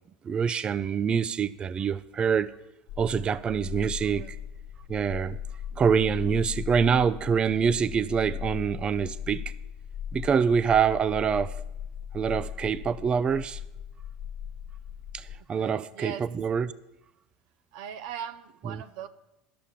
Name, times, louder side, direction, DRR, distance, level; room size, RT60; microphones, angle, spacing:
voice 1, 0.2-2.5 3.0-4.4 4.9-5.4 5.8-9.5 10.1-11.5 12.1-13.6 15.1-16.7 18.7-18.8, right 7 dB, 25° right, 17 dB, 0.4 m, -25 dB
sound 1, 2.9-15.4, left 8 dB, 60° left, 1.2 m, -38 dB
voice 2, 15.6-16.3 17.7-19.1, right 9 dB, 70° right, 12 dB, 0.7 m, -39 dB
11.5 x 6.8 x 7.3 m, 0.91 s
supercardioid pair, 110°, 4 cm